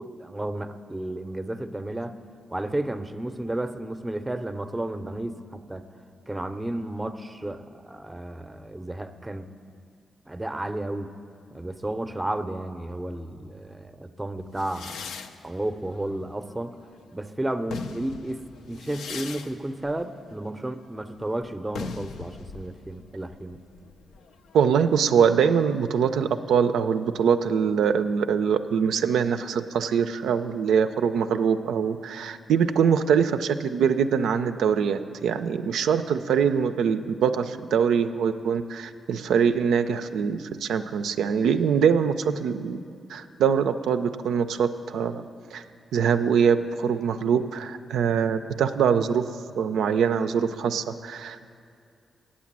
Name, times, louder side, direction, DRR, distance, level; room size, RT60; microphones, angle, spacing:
voice 1, 0.0-2.2 2.5-5.9 6.3-9.5 10.3-11.2 11.5-15.0 15.4-16.7 17.1-23.6, right 1 dB, 15° right, 9 dB, 0.6 m, -32 dB
sound 1, 14.6-17.0 17.5-25.0, left 5 dB, 85° left, 0.4 m, -41 dB
voice 2, 24.5-42.8 43.1-45.2 45.5-45.6 45.9-49.3 49.6-51.4, right 7 dB, 85° right, 9 dB, 0.4 m, -23 dB
8.5 x 8.3 x 7.4 m, 2.5 s
cardioid pair, 60°, 0 cm